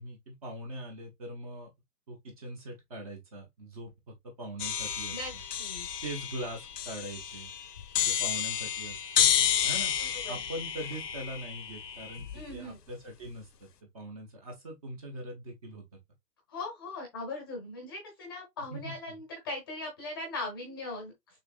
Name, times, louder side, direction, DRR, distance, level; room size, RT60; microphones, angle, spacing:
voice 1, 0.0-1.7 2.1-5.4 6.0-7.5 8.0-9.0 9.6-9.9 10.3-13.7 13.9-15.8 18.7-19.2, right 1 dB, 25° right, 0.9 m, -42 dB
sound 1, 4.6-12.5, left 9 dB, 85° left, 1.0 m, -31 dB
voice 2, 10.0-10.3 12.3-12.8 16.5-21.1, left 2 dB, 15° left, 0.8 m, -39 dB
6.5 x 3.2 x 2.4 m
hypercardioid pair, 175°, 47 cm